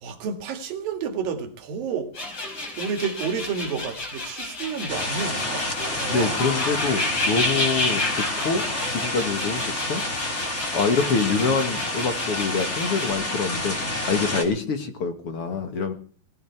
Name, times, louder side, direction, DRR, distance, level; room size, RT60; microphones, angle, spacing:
voice 1, 0.0-2.1 2.8-5.7 6.1-6.4, right 6 dB, 65° right, 3.7 m, -30 dB
sound 1, 2.1-13.1, left 2 dB, 35° left, 5.7 m, -31 dB
sound 2, 4.9-14.4, left 1 dB, 20° left, 3.1 m, -29 dB
voice 2, 6.1-10.0 10.7-13.8 14.1-15.9, left 4 dB, 50° left, 1.9 m, -26 dB
19.5 x 13.5 x 4.6 m
omnidirectional pair, 4.5 m